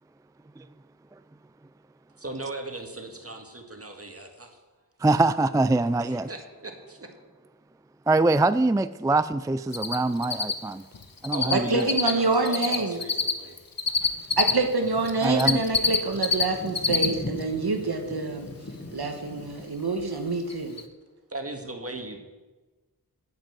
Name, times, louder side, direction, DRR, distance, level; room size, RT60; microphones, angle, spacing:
voice 1, 2.2-4.6 6.1-7.1 11.3-13.6 21.3-22.2, right 2 dB, 40° right, 1.9 m, -37 dB
voice 2, 5.0-6.3 8.1-10.8 11.2-11.9 15.2-15.6, right 2 dB, 10° right, 0.3 m, -23 dB
Cricket, 9.7-10.0 10.2-14.5 15.0-16.4 16.7-17.1 17.4-17.5 20.0-20.1 20.5-20.6 20.8-20.9, left 5 dB, 65° left, 1.0 m, -24 dB
voice 3, 11.5-13.0 14.4-18.5 18.9-20.7, right 3 dB, 90° right, 1.3 m, -26 dB
sound 1, 14.0-19.7, left 2 dB, 40° left, 1.4 m, -40 dB
9.0 x 8.1 x 7.5 m
wide cardioid pair, 45°, 37 cm